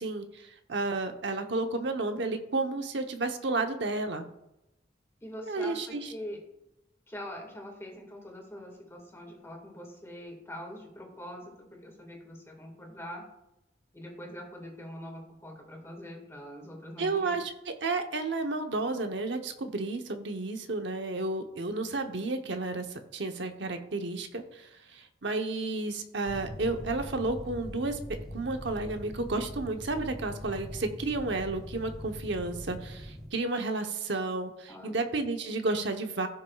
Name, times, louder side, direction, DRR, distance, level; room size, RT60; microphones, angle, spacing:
voice 1, 0.0-4.3 5.4-6.1 17.0-28.0 28.3-36.3, right 3 dB, 70° right, 5 dB, 0.9 m, -32 dB
voice 2, 5.2-6.4 7.1-13.3 13.9-17.4 26.8-26.9 34.7-35.0, equal, 15° left, 1 dB, 1.8 m, -43 dB
sound 1, 26.3-33.3, equal, 5° right, 2.8 m, -42 dB
15.5 x 6.3 x 2.4 m, 0.87 s
head